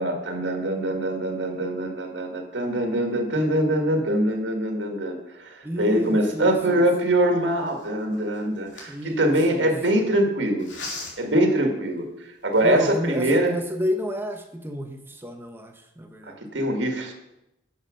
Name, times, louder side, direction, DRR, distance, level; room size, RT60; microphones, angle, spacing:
voice 1, 0.0-10.7 11.2-12.1 12.4-13.5 16.5-17.1, right 1 dB, 85° right, 3 dB, 1.8 m, -23 dB
voice 2, 5.6-6.9 8.9-9.7 12.6-16.4, equal, 10° right, 5 dB, 0.9 m, -31 dB
sound 1, 5.9-9.9 10.6-11.4 12.0-12.1 12.4-13.0, left 3 dB, 90° left, 3.3 m, -41 dB
9.9 x 7.2 x 6.3 m, 0.89 s
head